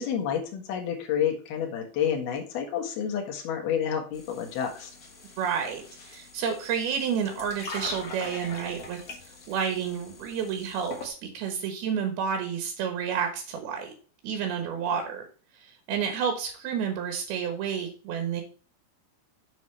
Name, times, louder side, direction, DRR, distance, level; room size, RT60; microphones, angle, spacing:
voice 1, 0.0-4.9, left 8 dB, 80° left, 1 dB, 3.5 m, -29 dB
sound 1, 4.1-11.1, left 3 dB, 55° left, 1.0 m, -43 dB
voice 2, 5.4-13.9 14.2-15.3 15.5-18.4, right 7 dB, 80° right, 5 dB, 3.2 m, -30 dB
7.5 x 6.9 x 3.3 m, 0.39 s
omnidirectional pair, 4.4 m